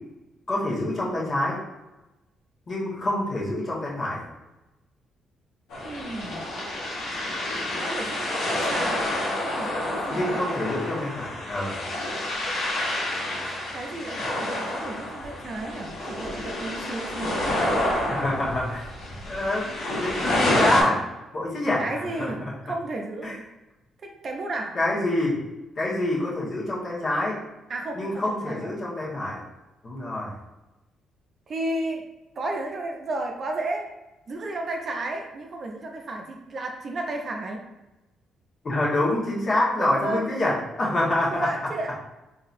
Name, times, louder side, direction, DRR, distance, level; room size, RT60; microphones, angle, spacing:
voice 1, 0.5-1.6 2.7-4.2 10.1-11.8 18.1-18.8 19.3-19.7 20.0-21.0 21.3-21.9 22.2-22.5 23.2-23.3 24.7-25.4 25.8-27.4 27.9-29.4 29.8-30.3 38.6-41.5, left 1 dB, 40° left, -5 dB, 1.4 m, -26 dB
sound 1, 5.7-20.8, left 1 dB, 85° left, 1.0 m, -28 dB
voice 2, 5.8-6.4 7.8-10.4 13.6-18.0 21.8-23.4 24.0-24.8 27.7-28.7 31.5-32.0 32.4-33.9 34.3-37.6 39.8-40.7 41.3-42.0, right 2 dB, 45° right, 2 dB, 0.6 m, -33 dB
3.9 x 2.8 x 2.6 m, 1.0 s
cardioid pair, 90°, 0 cm